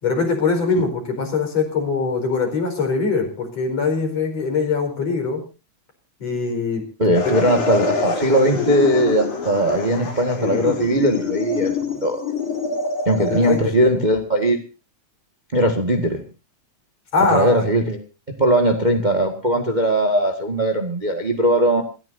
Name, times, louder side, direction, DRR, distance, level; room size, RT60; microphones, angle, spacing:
voice 1, 0.0-5.4 6.2-6.8 7.2-7.4 13.3-13.7 17.1-17.6, left 4 dB, 60° left, 3 dB, 5.8 m, -22 dB
voice 2, 7.0-12.3 13.0-14.6 15.5-16.2 17.3-18.0 18.4-21.8, right 1 dB, 20° right, 5 dB, 1.5 m, -19 dB
sound 1, 7.1-13.6, left 4 dB, 90° left, 4.9 m, -25 dB
27.5 x 14.0 x 2.7 m, 0.31 s
omnidirectional pair, 3.3 m